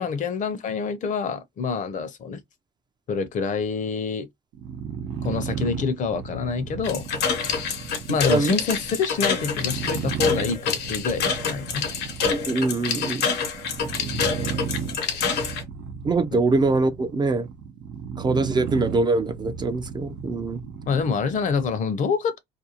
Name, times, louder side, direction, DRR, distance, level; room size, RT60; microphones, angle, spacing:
voice 1, 0.0-2.4 3.1-4.3 5.2-7.1 8.1-11.8 14.1-14.4 16.3-16.4 20.9-22.4, left 5 dB, 50° left, 0.6 m, -26 dB
sound 1, 4.5-21.8, right 7 dB, 85° right, 0.7 m, -35 dB
sound 2, 6.8-15.6, left 6 dB, 80° left, 0.9 m, -27 dB
voice 2, 8.1-8.6 12.3-13.3 16.0-17.5 18.2-20.6, right 3 dB, 25° right, 0.4 m, -23 dB
2.5 x 2.3 x 2.8 m
cardioid pair, 110°, 17 cm